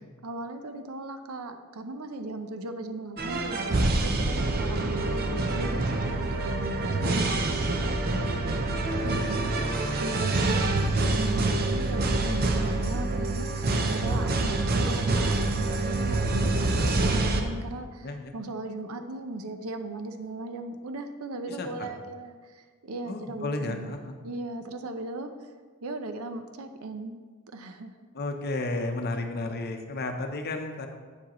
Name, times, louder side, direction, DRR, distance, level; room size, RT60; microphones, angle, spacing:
voice 1, 0.2-8.0 9.0-24.0 24.2-25.5 25.8-27.9, right 2 dB, 85° right, 8 dB, 0.6 m, -38 dB
sound 1, 3.2-17.4, right 2 dB, 45° right, 0.6 m, -26 dB
voice 2, 4.1-4.4 18.0-18.3 21.5-21.9 23.1-24.1 28.1-30.9, left 2 dB, 50° left, 5 dB, 0.7 m, -33 dB
8.3 x 7.3 x 3.0 m, 1.5 s
head